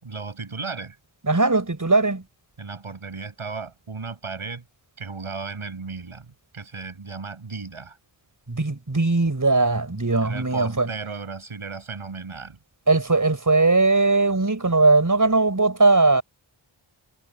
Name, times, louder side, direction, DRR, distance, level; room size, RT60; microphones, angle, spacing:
voice 1, 0.0-1.0 2.6-4.6 5.0-6.3 6.5-8.0 10.2-12.6, right 4 dB, 80° right, 7.7 m, -35 dB
voice 2, 1.2-2.2 8.5-10.9 12.9-16.2, right 3 dB, 40° right, 6.0 m, -19 dB
wide cardioid pair, 85°, 49 cm